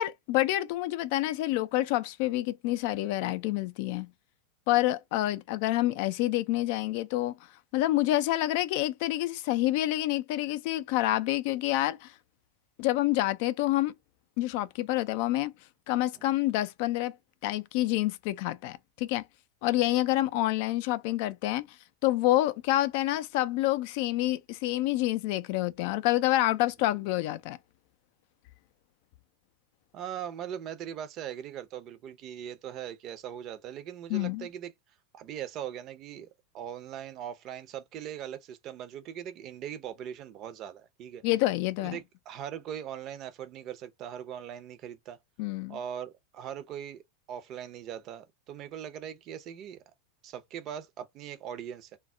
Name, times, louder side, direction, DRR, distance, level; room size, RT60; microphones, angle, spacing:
voice 1, 0.0-4.1 4.7-7.3 7.7-12.1 12.8-13.9 14.4-15.5 15.9-17.1 17.4-19.2 19.6-21.6 22.0-27.6 34.1-34.5 41.2-42.0 45.4-45.8, left 16 dB, 60° left, 0.3 m, -27 dB
voice 2, 29.9-34.7 35.1-36.3 36.5-41.2 41.8-45.2 45.7-47.0 47.3-49.8 50.2-52.0, right 9 dB, 45° right, 0.5 m, -40 dB
2.2 x 2.0 x 3.6 m
hypercardioid pair, 95°, 0 cm